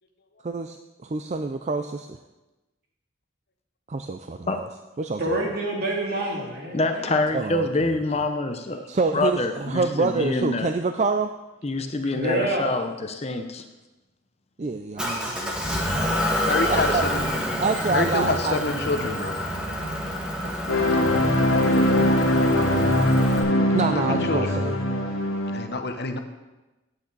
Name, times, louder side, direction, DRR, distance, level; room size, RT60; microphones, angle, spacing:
voice 1, 0.4-0.8 1.0-2.2 3.9-4.7 5.0-5.4 7.3-7.7 8.9-11.3 14.6-16.1 16.7-17.0 17.6-18.6 20.4-20.8 22.7-23.2 23.7-24.7, right 4 dB, 35° right, 7 dB, 0.4 m, -27 dB
voice 2, 5.2-7.1 12.0-12.7, right 1 dB, 50° right, -2 dB, 2.8 m, -27 dB
voice 3, 6.7-8.8 9.1-10.7 11.6-13.7, left 2 dB, 30° left, 7 dB, 0.7 m, -26 dB
Motor vehicle (road) / Engine, 15.0-23.4, left 1 dB, 5° right, 1.8 m, -28 dB
voice 4, 16.5-17.3 17.9-19.4 20.8-21.3 23.9-24.6 25.5-26.2, left 2 dB, 55° left, 6 dB, 1.0 m, -27 dB
sound 1, 20.7-25.7, left 1 dB, 90° left, 1.7 m, -21 dB
17.0 x 8.7 x 4.0 m, 1.1 s
head